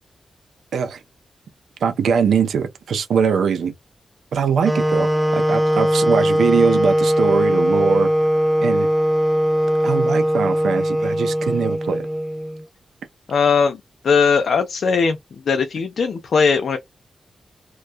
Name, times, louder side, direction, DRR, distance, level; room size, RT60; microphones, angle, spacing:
voice 1, 0.7-1.0 1.8-3.7 4.3-8.1 8.6-8.9 9.8-12.1, right 6 dB, 90° right, 0.4 m, -21 dB
sound 1, 4.6-12.6, equal, 10° right, 0.4 m, -19 dB
voice 2, 13.3-13.8 14.0-15.2 15.5-16.8, left 5 dB, 70° left, 0.4 m, -18 dB
2.2 x 2.1 x 2.5 m
wide cardioid pair, 100°, 0 cm